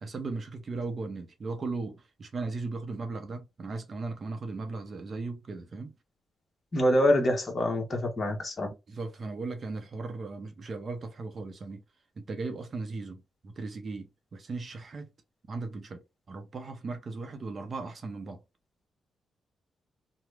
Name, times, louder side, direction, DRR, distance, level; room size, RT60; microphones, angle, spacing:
voice 1, 0.0-5.9 8.9-11.8 12.2-15.1 15.5-16.0 16.3-18.4, right 3 dB, 40° right, 0.6 m, -37 dB
voice 2, 6.7-8.7, left 1 dB, 35° left, 1.1 m, -25 dB
2.9 x 2.0 x 3.3 m
cardioid pair, 130°, 0 cm